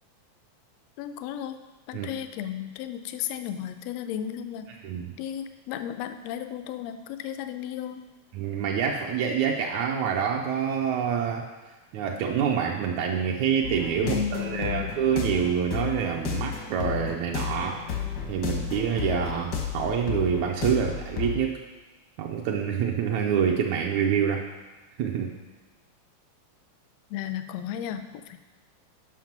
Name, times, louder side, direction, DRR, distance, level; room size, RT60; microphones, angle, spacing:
voice 1, 1.0-1.6 1.9-4.7 5.2-8.0 14.0-14.9 27.1-28.5, left 9 dB, 85° left, 9 dB, 1.5 m, -34 dB
voice 2, 8.3-11.5 11.9-17.9 18.3-21.6 22.2-24.5 25.0-25.3, right 7 dB, 80° right, 0 dB, 1.9 m, -26 dB
sound 1, 13.6-21.4, left 7 dB, 65° left, 1.0 m, -33 dB
7.4 x 5.8 x 5.9 m, 1.2 s
omnidirectional pair, 3.4 m